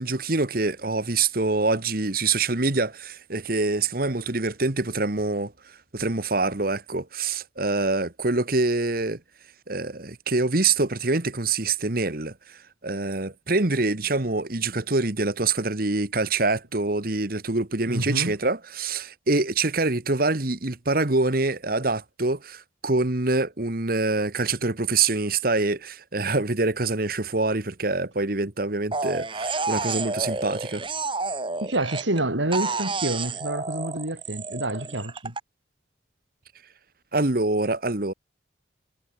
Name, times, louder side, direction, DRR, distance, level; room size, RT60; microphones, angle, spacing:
voice 1, 0.0-9.2 9.7-30.8 37.1-38.1, right 3 dB, 50° right, 1.6 m, -25 dB
voice 2, 17.9-18.4 31.6-35.3, right 1 dB, 90° right, 4.5 m, -28 dB
sound 1, 28.9-32.2 32.5-35.4, right 3 dB, 30° right, 2.8 m, -30 dB
head